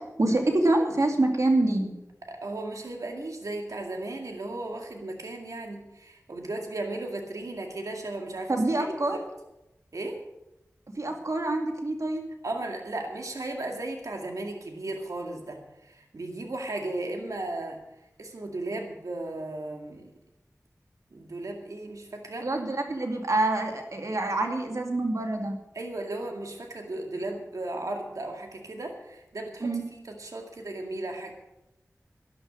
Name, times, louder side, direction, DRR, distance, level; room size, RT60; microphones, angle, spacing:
voice 1, 0.2-1.9 8.5-9.2 11.0-12.2 22.4-25.5 29.6-29.8, right 2 dB, 70° right, 3 dB, 2.4 m, -26 dB
voice 2, 2.3-9.2 9.9-10.2 12.4-17.8 18.2-20.1 21.1-22.6 25.7-29.8 30.2-31.3, right 2 dB, 90° right, 2 dB, 2.2 m, -35 dB
13.0 x 11.0 x 6.3 m, 0.90 s
wide cardioid pair, 55°, 6 cm